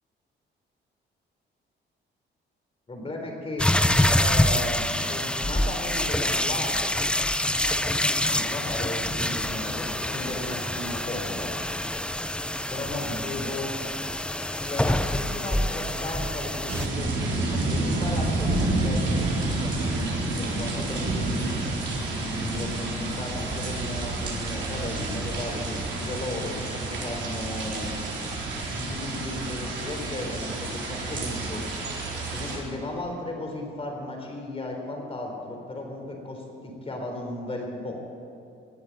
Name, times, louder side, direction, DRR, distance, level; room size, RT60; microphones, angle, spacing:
voice 1, 2.9-3.7 4.2-7.1 7.4-11.5 12.7-13.7 14.6-21.5 22.1-27.9 28.7-31.6 32.3-38.0, left 1 dB, 30° left, 1 dB, 3.8 m, -35 dB
sound 1, 3.6-16.9, left 1 dB, 5° left, 0.6 m, -26 dB
sound 2, 16.7-32.6, right 2 dB, 65° right, 3.9 m, -29 dB
18.5 x 7.2 x 9.3 m, 2.5 s
cardioid pair, 90°, 20 cm